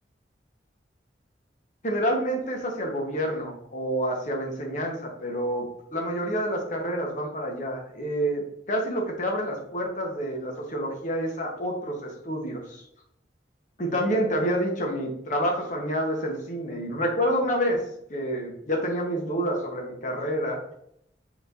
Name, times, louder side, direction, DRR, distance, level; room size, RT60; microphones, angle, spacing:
voice 1, 1.8-12.8 13.8-17.8 18.1-20.6, equal, 45° left, 1 dB, 1.1 m, -28 dB
4.5 x 4.4 x 2.6 m, 0.72 s
head